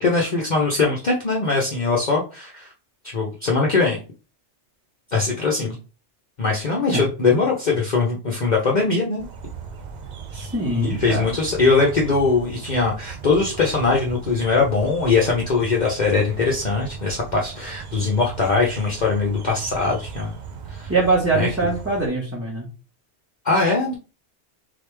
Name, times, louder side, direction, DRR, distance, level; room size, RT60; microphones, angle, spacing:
voice 1, 0.0-2.7 3.0-4.0 5.1-5.7 6.4-9.2 10.7-20.3 20.7-20.9 21.3-21.5 23.4-23.9, left 4 dB, 45° left, -2 dB, 0.9 m, -21 dB
sound 1, 9.2-22.1, right 5 dB, 50° right, 0.6 m, -37 dB
voice 2, 10.3-11.3 20.9-22.7, right 3 dB, 10° right, -7 dB, 1.1 m, -23 dB
3.9 x 3.4 x 3.3 m, 0.34 s
omnidirectional pair, 1.2 m